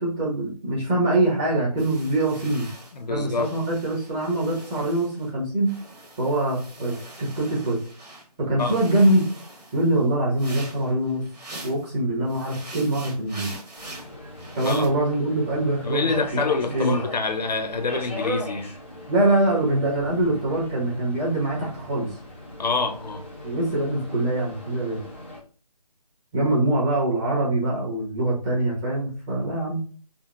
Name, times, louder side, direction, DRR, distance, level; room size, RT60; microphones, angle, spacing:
voice 1, 0.0-2.7 3.1-5.7 6.2-7.8 8.4-9.3 9.7-11.2 11.6-13.5 14.5-16.4 16.7-17.0 19.1-22.1 23.4-25.0 26.3-29.8, right 1 dB, 15° right, -7 dB, 0.8 m, -23 dB
sound 1, 1.8-5.3 5.6-8.2 8.6-11.9 12.3-14.9, right 2 dB, 75° right, 1.3 m, -43 dB
voice 2, 2.9-3.5 8.6-8.8 14.6-14.9 15.8-18.7 22.6-23.2, left 4 dB, 90° left, 7 dB, 0.6 m, -26 dB
Subway metro underground, 13.8-25.4, left 1 dB, 20° left, 0.4 m, -39 dB
3.7 x 2.0 x 2.3 m, 0.40 s
figure-of-eight pair, 165°, 21 cm